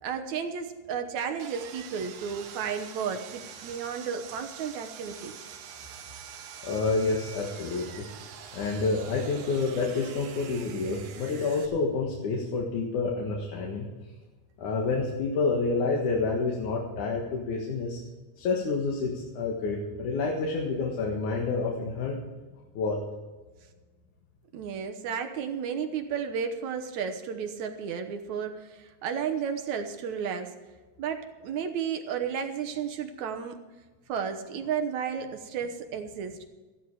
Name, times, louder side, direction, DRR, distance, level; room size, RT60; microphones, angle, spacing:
voice 1, 0.0-5.3 24.5-30.6 31.0-33.6 34.1-36.4, right 7 dB, 70° right, 6 dB, 2.1 m, -33 dB
Sawing, 1.4-11.7, right 8 dB, 85° right, 3.0 m, -45 dB
voice 2, 6.6-8.0 8.4-13.9 14.6-18.0 18.4-22.2 22.7-23.0, left 4 dB, 65° left, -1 dB, 3.0 m, -28 dB
14.5 x 12.5 x 4.8 m, 1.3 s
omnidirectional pair, 4.0 m